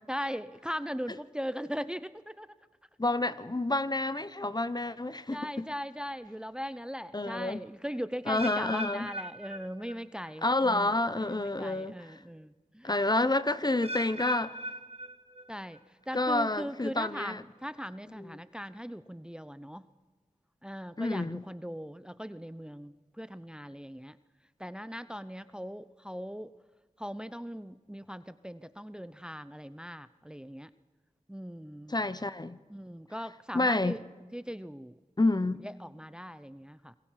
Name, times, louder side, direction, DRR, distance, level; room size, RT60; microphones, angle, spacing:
voice 1, 0.1-2.5 4.8-5.0 5.3-12.9 15.5-19.9 20.6-24.2 24.6-26.5 27.0-30.7 31.3-31.9 32.7-34.0 34.3-35.0 35.6-36.9, equal, 5° right, 0.7 m, -39 dB
voice 2, 3.0-5.7 7.1-7.6 8.3-9.1 10.4-12.0 12.8-14.6 16.1-17.4 18.2-18.3 21.0-21.4 31.9-32.6 33.5-34.0 35.2-35.6, left 2 dB, 30° left, 0.9 m, -29 dB
sound 1, 8.3-10.4 10.6-11.1 11.7-11.8 13.8-15.8 16.1-16.5 17.2-17.3, equal, 50° right, 1.6 m, -41 dB
28.5 x 21.0 x 5.8 m
wide cardioid pair, 45°, 13 cm